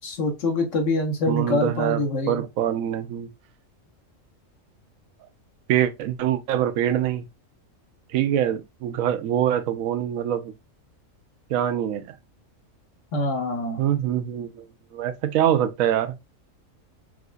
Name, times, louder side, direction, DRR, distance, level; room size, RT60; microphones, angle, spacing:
voice 1, 0.0-2.4 13.1-13.8, left 2 dB, 70° left, 1.4 m, -25 dB
voice 2, 1.3-3.3 5.7-7.3 8.1-10.5 11.5-12.1 13.8-14.7 14.9-16.2, right 10 dB, 90° right, 1.0 m, -24 dB
4.8 x 2.5 x 2.3 m
omnidirectional pair, 1.4 m